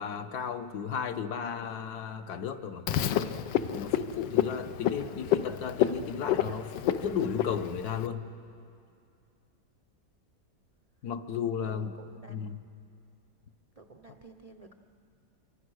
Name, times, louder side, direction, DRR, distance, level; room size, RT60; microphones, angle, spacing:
voice 1, 0.0-2.8 3.7-8.2 11.0-11.9 12.3-12.6, left 7 dB, 65° left, 8 dB, 1.3 m, -34 dB
Frog, 2.9-8.1, left 10 dB, 80° left, 1.4 m, -30 dB
voice 2, 5.0-6.0 6.2-6.6 11.6-12.5 13.8-14.7, right 3 dB, 65° right, 5 dB, 0.3 m, -51 dB
27.0 x 24.5 x 6.3 m, 2.4 s
omnidirectional pair, 2.0 m